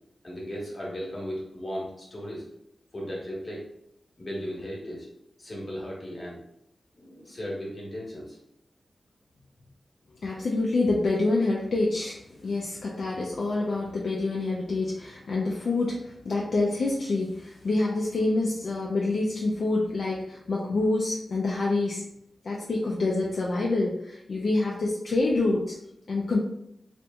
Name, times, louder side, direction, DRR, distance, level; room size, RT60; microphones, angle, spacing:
voice 1, 0.2-2.4 2.9-3.6 4.2-5.1 5.4-6.4 6.9-8.4, equal, 45° left, -4 dB, 1.0 m, -36 dB
voice 2, 10.2-12.2 12.4-22.0 22.4-25.7 26.1-26.4, left 2 dB, 75° left, -3 dB, 0.4 m, -27 dB
2.7 x 2.5 x 2.2 m, 0.76 s
cardioid pair, 55°, 0 cm